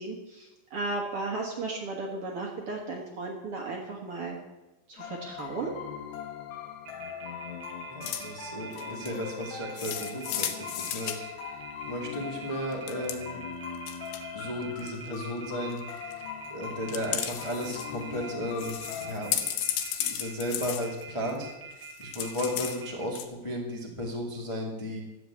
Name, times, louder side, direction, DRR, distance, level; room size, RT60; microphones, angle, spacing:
voice 1, 0.0-4.4 4.9-5.8, right 3 dB, 55° right, 1 dB, 1.7 m, -35 dB
sound 1, 5.0-19.3, left 7 dB, 65° left, 2.1 m, -41 dB
sound 2, 6.9-23.1, right 5 dB, 75° right, 3.6 m, -45 dB
voice 2, 7.9-11.5 11.9-13.4 14.3-19.4 19.9-25.0, equal, 30° left, -1 dB, 0.5 m, -35 dB
sound 3, 8.0-8.3 8.7-9.2 9.8-11.2 12.7-13.2 13.8-14.2 14.6-15.1 15.7-16.1 16.9-17.9 18.2-18.3 18.6-21.5 21.8-22.8 23.1-23.3, left 10 dB, 85° left, 2.9 m, -34 dB
13.0 x 7.8 x 8.1 m, 1.0 s
omnidirectional pair, 4.3 m